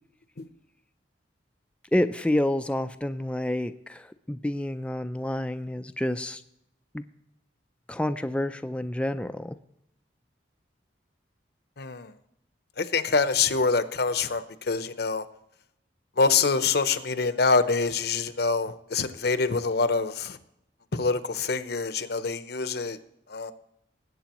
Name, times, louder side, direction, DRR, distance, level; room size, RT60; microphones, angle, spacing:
voice 1, 1.9-6.4 6.9-7.0 7.9-9.6, left 1 dB, 5° left, 9 dB, 0.4 m, -28 dB
voice 2, 11.8-12.1 12.8-15.3 16.2-20.4 20.9-23.0 23.3-23.5, left 4 dB, 60° left, 12 dB, 0.7 m, -25 dB
20.0 x 8.4 x 3.0 m, 0.81 s
head